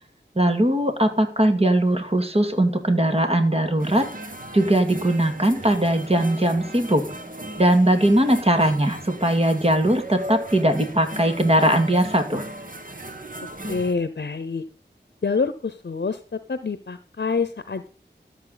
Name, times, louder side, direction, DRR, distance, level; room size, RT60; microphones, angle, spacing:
voice 1, 0.4-4.0 4.5-7.0 7.6-12.5, right 1 dB, 35° right, 6 dB, 2.3 m, -20 dB
sound 1, 3.8-13.9, right 1 dB, 50° right, 2.1 m, -37 dB
voice 2, 13.7-14.6 15.2-17.9, left 4 dB, 65° left, 12 dB, 0.8 m, -27 dB
13.5 x 7.6 x 4.0 m, 0.40 s
wide cardioid pair, 45°, 19 cm